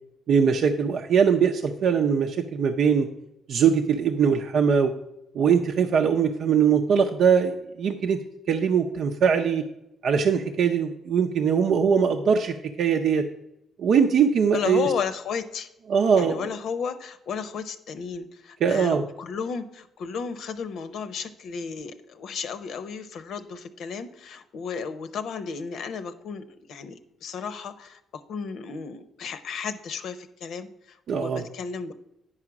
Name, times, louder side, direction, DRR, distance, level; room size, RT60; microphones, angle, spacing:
voice 1, 0.3-3.1 3.5-4.9 5.3-8.2 8.5-9.6 10.0-13.2 13.8-14.9 15.9-16.5 18.6-19.0 31.1-31.4, right 6 dB, 70° right, 3 dB, 0.6 m, -21 dB
voice 2, 14.5-15.7 16.2-28.0 28.3-31.9, left 6 dB, 70° left, 11 dB, 0.8 m, -33 dB
9.8 x 4.9 x 6.0 m, 0.87 s
cardioid pair, 90°, 0 cm